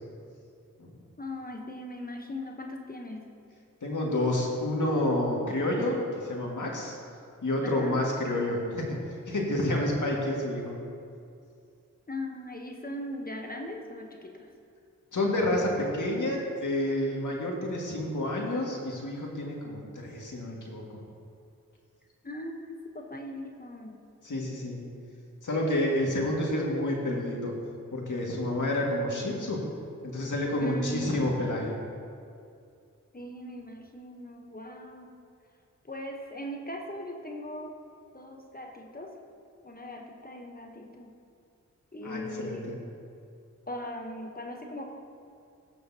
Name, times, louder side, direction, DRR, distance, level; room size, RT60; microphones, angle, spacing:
voice 1, 1.2-3.2 7.6-8.0 12.1-14.5 22.2-24.0 30.6-31.4 33.1-35.1 35.8-37.8 38.1-39.2 39.6-41.1 41.9-42.8 43.7-44.9, left 1 dB, 25° left, 2 dB, 1.0 m, -39 dB
voice 2, 3.8-7.0 7.4-9.0 9.3-10.8 15.1-21.0 24.2-24.8 25.4-27.5 27.9-29.6 30.0-31.7 42.0-42.8, left 1 dB, 60° left, -2 dB, 2.0 m, -29 dB
16.5 x 6.5 x 2.8 m, 2.4 s
cardioid pair, 45°, 33 cm